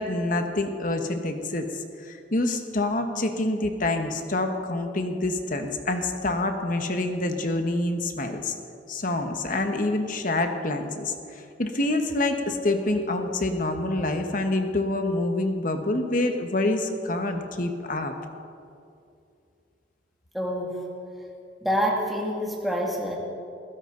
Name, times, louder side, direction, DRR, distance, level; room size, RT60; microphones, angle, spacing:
voice 1, 0.0-1.7 2.0-8.5 8.9-18.1, left 2 dB, 45° left, 6 dB, 1.4 m, -27 dB
voice 2, 20.3-20.9 21.6-23.2, equal, ahead, -2 dB, 2.2 m, -27 dB
21.0 x 16.0 x 3.9 m, 2.5 s
head